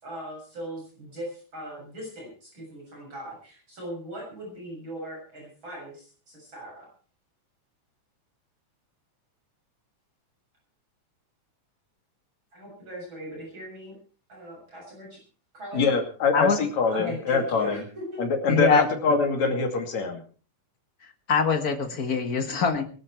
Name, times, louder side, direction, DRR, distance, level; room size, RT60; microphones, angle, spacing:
voice 1, 0.0-6.9 12.5-13.9 14.3-15.2 15.5-16.0 16.9-18.3, equal, 40° right, -3 dB, 8.0 m, -39 dB
voice 2, 15.7-17.8 18.2-20.2, left 4 dB, 65° left, 4 dB, 3.8 m, -24 dB
voice 3, 18.5-18.9 21.3-22.8, left 5 dB, 35° left, 6 dB, 1.8 m, -23 dB
22.0 x 12.0 x 4.6 m, 0.41 s
omnidirectional pair, 3.5 m